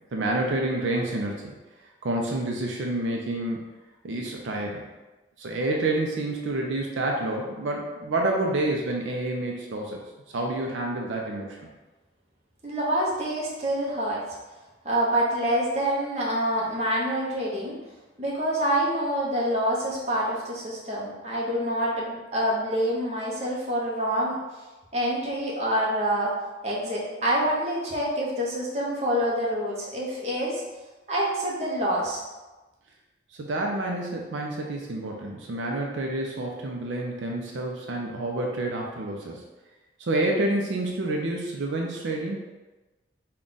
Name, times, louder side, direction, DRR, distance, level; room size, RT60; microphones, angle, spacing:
voice 1, 0.1-1.5 2.0-3.6 4.0-4.9 5.4-10.0 10.3-11.7 33.3-39.4 40.0-42.4, right 2 dB, 80° right, 0 dB, 0.5 m, -28 dB
voice 2, 12.6-14.2 14.8-17.8 18.2-24.4 24.9-26.4 26.6-30.6 31.1-32.2, right 1 dB, 35° right, -5 dB, 0.8 m, -26 dB
3.7 x 2.3 x 3.9 m, 1.1 s
head